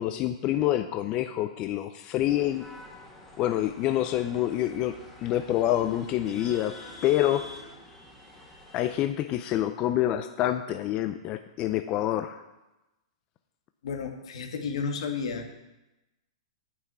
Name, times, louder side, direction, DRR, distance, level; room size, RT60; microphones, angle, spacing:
voice 1, 0.0-2.6 3.4-4.9 5.2-6.7 7.0-7.5 8.7-12.4, left 13 dB, 30° left, 9 dB, 0.4 m, -27 dB
sound 1, 2.3-9.0, left 1 dB, 10° left, 2.0 m, -47 dB
voice 2, 13.8-15.6, left 5 dB, 70° left, 5 dB, 1.6 m, -32 dB
9.5 x 5.8 x 8.1 m, 0.99 s
hypercardioid pair, 150°, 3 cm